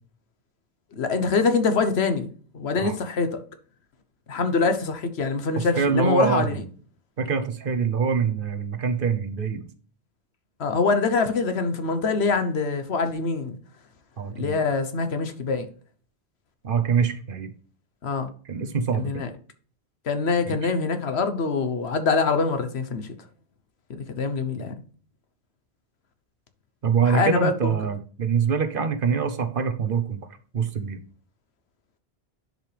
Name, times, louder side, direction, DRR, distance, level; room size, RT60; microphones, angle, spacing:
voice 1, 0.9-2.3 2.5-3.4 4.3-6.6 10.6-13.6 14.4-15.7 18.0-18.3 18.9-19.3 20.0-23.1 23.9-24.7 27.0-27.7, left 4 dB, 75° left, 1.2 m, -24 dB
voice 2, 5.6-6.6 7.2-9.7 14.2-14.6 16.6-17.5 18.5-19.2 20.5-20.7 26.8-30.2 30.5-31.0, right 6 dB, 55° right, 1.0 m, -25 dB
10.5 x 5.2 x 3.3 m
omnidirectional pair, 1.1 m